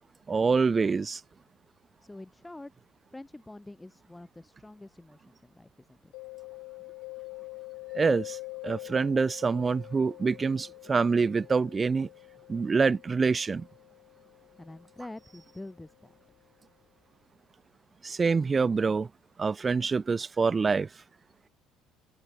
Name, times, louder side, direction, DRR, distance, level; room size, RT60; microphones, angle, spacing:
voice 1, 0.3-1.2 7.9-8.4 8.6-12.1 12.5-13.7 18.0-19.1 19.4-20.9, right 4 dB, 30° right, 0.4 m, -26 dB
voice 2, 2.0-2.7 3.1-6.1 14.6-15.9, left 2 dB, 10° left, 1.3 m, -46 dB
Mallet percussion, 6.1-15.7, left 26 dB, 75° left, 0.8 m, -45 dB
open air
hypercardioid pair, 70°, 0 cm